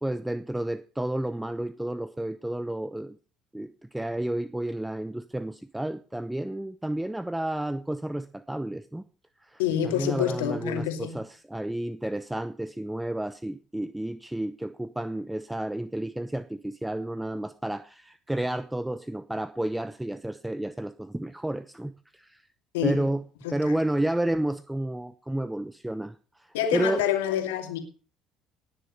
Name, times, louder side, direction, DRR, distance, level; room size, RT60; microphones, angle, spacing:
voice 1, 0.0-3.2 3.5-9.0 9.4-22.4 22.8-23.2 23.5-27.0, right 1 dB, 5° right, 0.9 m, -31 dB
voice 2, 9.6-11.2 22.7-23.0 23.4-23.6 26.5-27.8, left 9 dB, 85° left, 2.5 m, -27 dB
18.5 x 6.7 x 5.3 m
hypercardioid pair, 60°, 0 cm